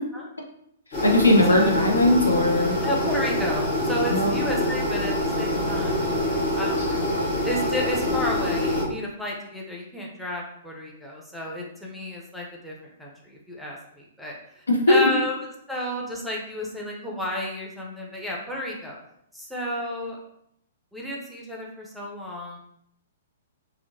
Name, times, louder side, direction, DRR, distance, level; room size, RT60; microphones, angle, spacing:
sound 1, 0.9-8.8, left 1 dB, 45° left, 0.9 m, -25 dB
voice 1, 1.0-2.7 4.1-4.4 14.7-15.1, left 1 dB, 85° left, 1 dB, 0.5 m, -19 dB
voice 2, 2.8-7.0 7.4-19.0 19.3-20.2 20.9-22.6, left 1 dB, ahead, -4 dB, 0.5 m, -32 dB
2.7 x 2.0 x 2.6 m, 0.73 s
figure-of-eight pair, 115°, 0 cm